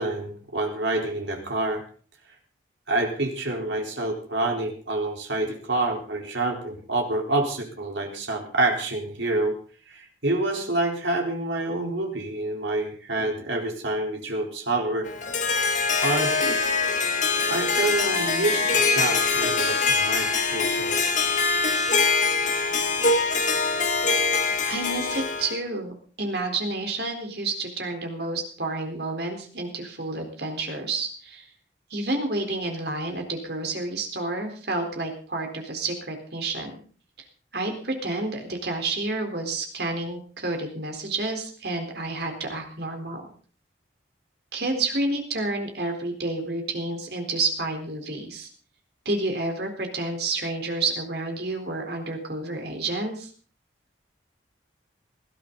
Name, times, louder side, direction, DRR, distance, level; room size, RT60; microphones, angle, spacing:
voice 1, 0.0-1.8 2.9-9.5 9.9-15.1 16.0-16.6 17.5-20.9, right 2 dB, 75° right, 1 dB, 4.0 m, -27 dB
Harp, 15.1-25.6, left 4 dB, 40° left, 2.1 m, -23 dB
voice 2, 24.7-25.9 26.2-31.5 31.9-36.7 37.5-43.2 44.5-48.5 49.1-53.3, right 2 dB, 60° right, 4 dB, 4.1 m, -29 dB
20.0 x 14.0 x 4.0 m, 0.42 s
head